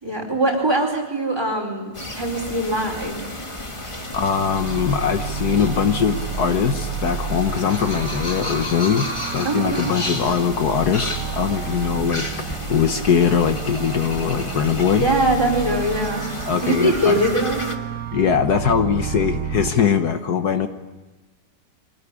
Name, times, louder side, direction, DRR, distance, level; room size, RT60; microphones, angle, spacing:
voice 1, 0.0-3.2 9.4-9.8 15.0-16.3 16.6-17.6, right 1 dB, 15° right, 2 dB, 4.6 m, -22 dB
sound 1, 1.9-17.7, left 1 dB, 20° left, 1.7 m, -32 dB
sound 2, 3.8-19.7, right 7 dB, 75° right, 1.8 m, -31 dB
voice 2, 4.1-9.1 9.3-15.0 16.5-17.1 18.1-20.7, left 7 dB, 65° left, 8 dB, 1.6 m, -21 dB
24.5 x 18.0 x 9.9 m, 1.2 s
omnidirectional pair, 1.8 m